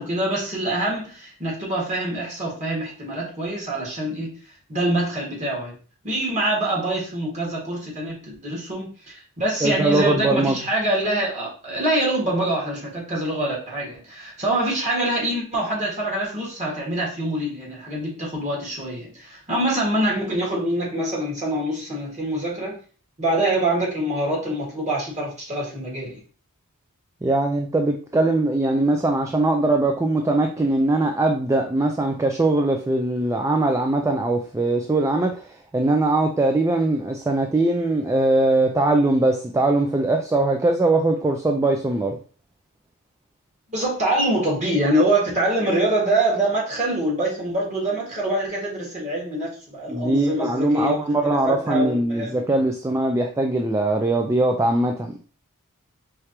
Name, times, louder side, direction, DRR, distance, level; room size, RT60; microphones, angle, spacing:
voice 1, 0.0-4.3 4.7-5.7 6.0-22.8 23.2-26.2 43.7-52.3, right 1 dB, 35° right, -3 dB, 1.9 m, -25 dB
voice 2, 9.6-10.6 27.2-42.2 49.9-55.2, right 2 dB, 15° right, 3 dB, 0.3 m, -21 dB
4.8 x 3.3 x 2.9 m, 0.39 s
head